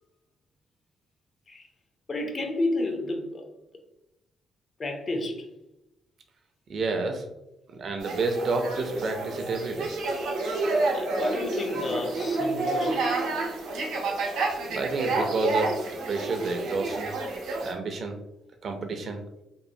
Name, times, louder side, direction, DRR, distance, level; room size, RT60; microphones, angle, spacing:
voice 1, 2.1-3.5 4.8-5.5 10.8-13.1, left 2 dB, 40° left, 0.5 m, -31 dB
voice 2, 6.7-7.2 7.7-9.9 14.7-15.8 16.1-17.1 17.6-18.2 18.6-19.2, right 3 dB, 55° right, 0.5 m, -29 dB
sound 1, 8.0-17.7, right 3 dB, 90° right, 0.7 m, -29 dB
3.0 x 2.1 x 2.6 m
cardioid pair, 90°, 0 cm